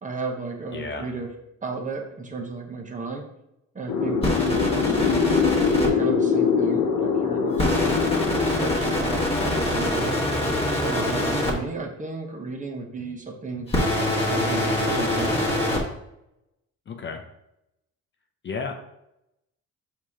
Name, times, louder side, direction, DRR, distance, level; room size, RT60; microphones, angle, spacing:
voice 1, 0.0-1.3 1.6-3.2 3.7-5.3 5.8-8.0 8.4-10.2 10.7-13.7 14.3-15.4, right 3 dB, 25° right, 2 dB, 0.9 m, -34 dB
voice 2, 0.7-1.1 16.9-17.2 18.4-18.7, left 4 dB, 40° left, 4 dB, 0.6 m, -32 dB
sound 1, 3.9-10.1, left 6 dB, 75° left, 0.8 m, -24 dB
sound 2, 4.2-5.9 7.6-11.5 13.7-15.8, left 1 dB, 20° left, 1.4 m, -24 dB
4.7 x 2.9 x 3.5 m, 0.84 s
cardioid pair, 90°, 30 cm